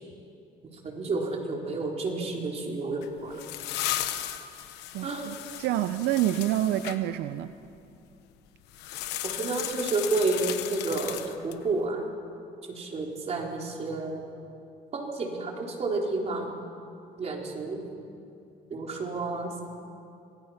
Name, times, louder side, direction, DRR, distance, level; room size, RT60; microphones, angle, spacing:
voice 1, 0.7-3.4 5.0-5.3 9.2-12.0 12.7-14.3 14.9-16.5 17.2-17.8 18.7-19.6, right 3 dB, 40° right, -1 dB, 4.1 m, -30 dB
sound 1, 3.0-7.0 8.7-11.7, left 13 dB, 90° left, 1.1 m, -35 dB
voice 2, 4.9-7.5, right 13 dB, 80° right, 11 dB, 0.7 m, -28 dB
25.0 x 19.0 x 5.8 m, 2.6 s
cardioid pair, 110°, 17 cm